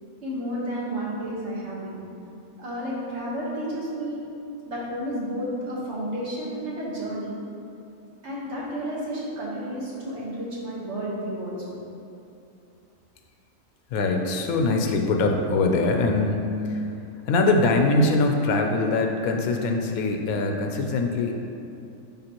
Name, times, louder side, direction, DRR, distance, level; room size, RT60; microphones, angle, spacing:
voice 1, 0.2-2.0 2.6-4.2 4.6-7.3 8.2-11.6, equal, 55° right, -6 dB, 1.6 m, -31 dB
voice 2, 13.9-16.9 17.3-21.4, left 3 dB, 80° left, 3 dB, 1.1 m, -23 dB
10.5 x 3.6 x 2.9 m, 2.7 s
omnidirectional pair, 1.5 m